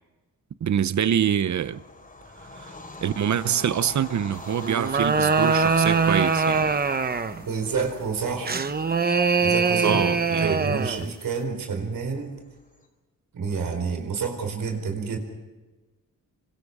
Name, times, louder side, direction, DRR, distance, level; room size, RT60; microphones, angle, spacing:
voice 1, 0.6-1.8 2.5-2.7 3.0-6.7 9.8-10.7, right 9 dB, 55° right, 0.8 m, -25 dB
Bird vocalization bird call bird song / Train, 1.6-12.8, left 2 dB, 25° left, 4.5 m, -43 dB
sound 1, 4.6-7.4 8.5-11.1, right 4 dB, 25° right, 0.9 m, -23 dB
voice 2, 7.5-8.6 9.4-12.3 13.3-15.2, right 5 dB, 70° right, 4.7 m, -29 dB
28.0 x 25.0 x 4.9 m
wide cardioid pair, 160°, 35 cm